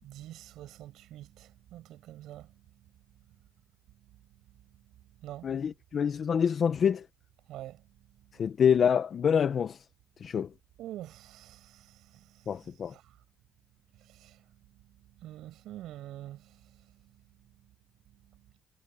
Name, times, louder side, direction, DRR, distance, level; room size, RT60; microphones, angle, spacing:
voice 1, 0.0-2.6 5.2-5.6 7.5-7.8 10.8-13.2 13.9-14.5 15.1-17.2 18.3-18.4, right 14 dB, 70° right, 7.4 m, -47 dB
voice 2, 5.4-7.0 8.4-9.8 10.2-10.5 12.5-12.9, left 7 dB, 40° left, 0.9 m, -26 dB
cardioid pair, 125°, 0 cm